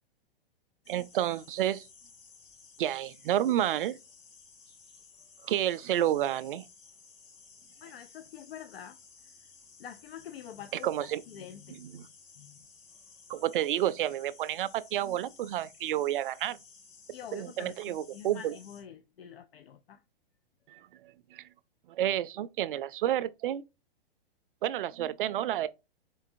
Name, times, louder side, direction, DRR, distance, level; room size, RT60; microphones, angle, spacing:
sound 1, 0.8-18.8, left 5 dB, 35° left, 1.9 m, -56 dB
voice 1, 0.9-1.9 2.8-4.0 5.4-6.7 10.7-11.2 11.7-12.1 13.3-16.6 17.3-18.6 20.7-21.5 21.9-23.6 24.6-25.7, right 12 dB, 60° right, 0.4 m, -30 dB
voice 2, 7.8-9.0 9.8-10.9 11.3-11.8 12.4-12.6 17.1-20.0, left 9 dB, 75° left, 0.5 m, -46 dB
3.8 x 3.8 x 2.6 m
hypercardioid pair, 115°, 30 cm